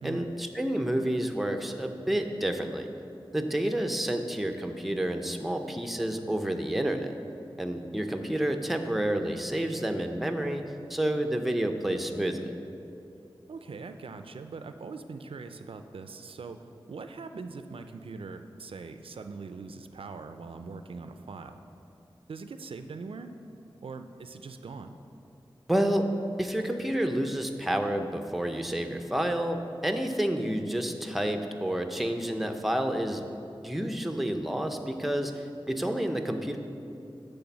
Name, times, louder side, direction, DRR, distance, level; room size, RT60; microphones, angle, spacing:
voice 1, 0.0-2.9 3.3-7.1 7.6-10.6 10.9-12.5 25.7-26.1 26.4-33.2 33.6-36.6, right 1 dB, ahead, 5 dB, 0.5 m, -29 dB
voice 2, 13.5-16.6 16.9-21.6 22.3-23.3 23.8-24.9, right 4 dB, 80° right, 8 dB, 0.4 m, -41 dB
10.0 x 3.4 x 7.1 m, 2.6 s
wide cardioid pair, 85°, 9 cm